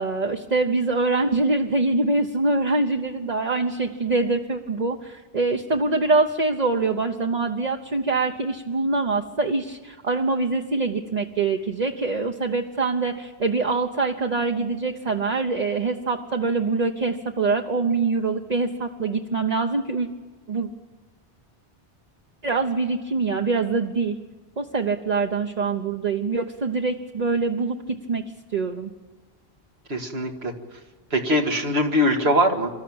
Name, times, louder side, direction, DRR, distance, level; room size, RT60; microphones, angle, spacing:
voice 1, 0.0-20.1 20.5-20.7 22.4-24.2 24.6-27.8 28.1-28.2 28.5-28.9, right 3 dB, 45° right, 2 dB, 1.1 m, -24 dB
voice 2, 29.9-30.5 31.1-32.7, equal, 85° right, 3 dB, 2.2 m, -22 dB
25.5 x 13.0 x 8.8 m, 1.4 s
omnidirectional pair, 1.0 m